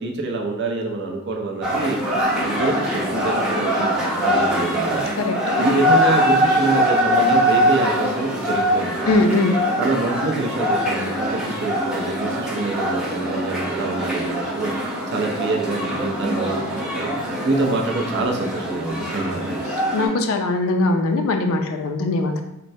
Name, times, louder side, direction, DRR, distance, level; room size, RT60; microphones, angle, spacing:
voice 1, 0.0-2.0 2.3-5.0 5.6-9.0 9.8-14.7 15.1-17.1 17.4-19.5, right 3 dB, 50° right, 1 dB, 0.5 m, -26 dB
sound 1, 1.6-20.1, equal, 5° right, 0.6 m, -22 dB
voice 2, 9.1-9.5 19.9-22.4, left 2 dB, 70° left, 5 dB, 0.4 m, -20 dB
4.3 x 2.1 x 2.6 m, 0.87 s
head